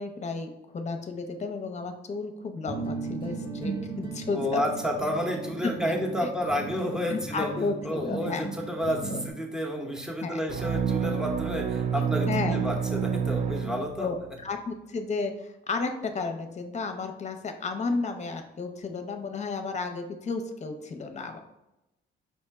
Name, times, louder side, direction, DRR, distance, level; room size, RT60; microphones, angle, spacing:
voice 1, 0.0-4.6 5.6-5.7 6.2-6.3 7.1-8.5 9.1-9.2 10.2-10.4 12.2-12.6 14.0-21.4, left 4 dB, 35° left, 6 dB, 0.7 m, -33 dB
sound 1, 2.7-9.3, right 3 dB, 25° right, 1.1 m, -37 dB
voice 2, 4.3-7.5 7.8-14.1, equal, 5° right, 1 dB, 0.9 m, -30 dB
sound 2, 10.5-14.3, right 7 dB, 40° right, 0.4 m, -28 dB
5.5 x 2.1 x 4.6 m, 0.92 s
cardioid pair, 90°, 20 cm